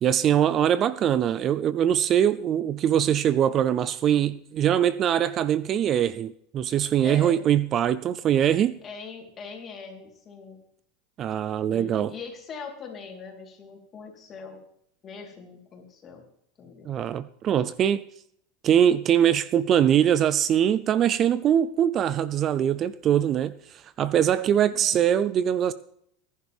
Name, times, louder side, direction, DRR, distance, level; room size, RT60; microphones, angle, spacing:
voice 1, 0.0-8.8 11.2-12.1 16.9-18.0 18.6-25.7, right 10 dB, 35° right, 0.5 m, -22 dB
voice 2, 7.0-7.4 8.8-10.6 11.7-14.6 15.0-16.2 16.6-16.9 24.3-24.9, left 5 dB, 30° left, 3.8 m, -41 dB
19.0 x 11.0 x 3.5 m
supercardioid pair, 135°, 0 cm